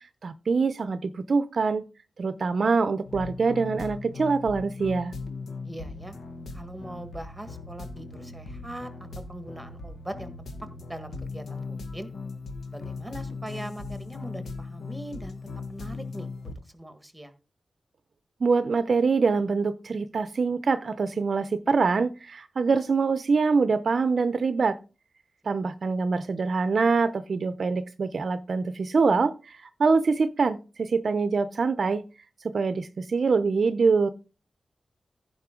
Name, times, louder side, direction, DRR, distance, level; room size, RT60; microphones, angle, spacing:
voice 1, 0.2-1.9 2.2-5.1 18.4-24.8 25.5-32.0 32.5-34.1, right 4 dB, 55° right, 12 dB, 0.6 m, -24 dB
sound 1, 3.0-16.5, left 3 dB, 80° left, 1.9 m, -38 dB
voice 2, 5.6-6.1 6.5-8.9 9.3-10.3 10.9-12.1 12.7-15.4 15.7-17.3, right 1 dB, 5° right, 9 dB, 1.5 m, -41 dB
15.5 x 5.3 x 3.7 m, 0.32 s
wide cardioid pair, 150°, 0 cm